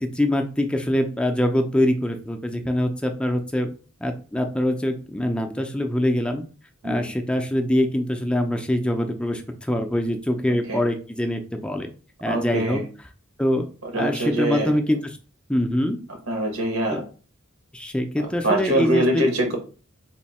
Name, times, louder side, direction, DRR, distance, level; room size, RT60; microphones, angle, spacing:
voice 1, 0.0-3.7 4.0-6.4 6.8-11.9 12.2-12.8 13.4-13.7 13.9-15.2 15.5-16.0 16.9-17.0 17.7-19.2, left 1 dB, 5° left, 4 dB, 0.5 m, -24 dB
voice 2, 12.3-12.9 13.8-14.7 16.3-17.0 18.2-19.6, right 1 dB, 85° right, 2 dB, 1.5 m, -24 dB
4.2 x 2.7 x 4.2 m, 0.37 s
head